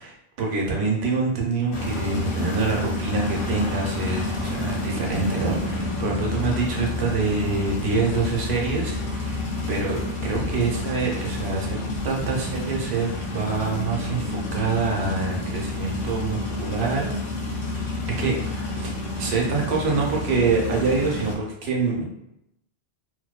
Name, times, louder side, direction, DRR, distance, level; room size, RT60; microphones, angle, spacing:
voice 1, 0.0-17.2 17.5-17.6 18.2-18.9 19.2-22.0, right 4 dB, 80° right, -1 dB, 0.9 m, -26 dB
sound 1, 1.7-21.4, left 2 dB, 65° left, 0.7 m, -29 dB
2.5 x 2.1 x 2.3 m, 0.83 s
omnidirectional pair, 1.1 m